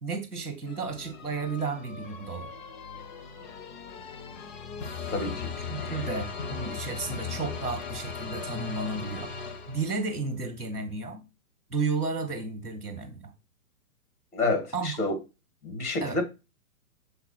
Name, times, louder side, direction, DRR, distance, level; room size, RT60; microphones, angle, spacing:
voice 1, 0.0-2.5 5.7-11.2 11.7-13.3 14.7-14.9 16.0-16.2, right 4 dB, ahead, 0.4 m, -33 dB
sound 1, 0.7-10.2, left 5 dB, 35° left, 0.8 m, -38 dB
voice 2, 5.1-5.5 5.8-6.1 14.3-15.2 15.6-16.2, left 2 dB, 80° left, 2.7 m, -29 dB
6.7 x 4.1 x 4.4 m
hypercardioid pair, 130°, 44 cm